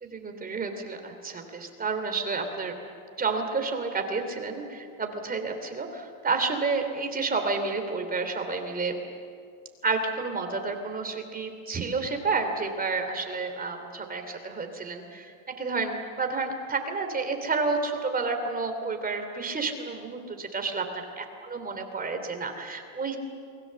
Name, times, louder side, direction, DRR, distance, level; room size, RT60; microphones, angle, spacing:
voice 1, 0.0-2.8 3.2-8.9 9.8-23.2, right 4 dB, 20° right, 5 dB, 3.0 m, -30 dB
28.5 x 21.5 x 7.6 m, 2.3 s
cardioid pair, 135°, 44 cm